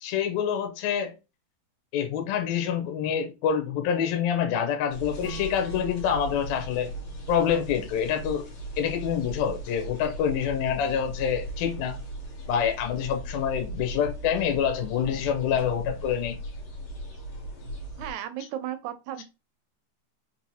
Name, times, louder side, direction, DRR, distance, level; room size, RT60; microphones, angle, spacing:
voice 1, 0.0-1.1 1.9-6.9 7.3-8.5 8.8-12.0 12.5-16.4, left 8 dB, 75° left, 1.9 m, -26 dB
sound 1, 4.9-18.1, right 1 dB, 60° left, 1.7 m, -38 dB
Strum, 5.2-9.5, right 4 dB, 15° left, 0.4 m, -47 dB
voice 2, 18.0-19.2, right 11 dB, 80° right, 1.8 m, -34 dB
4.7 x 2.8 x 2.7 m
omnidirectional pair, 3.4 m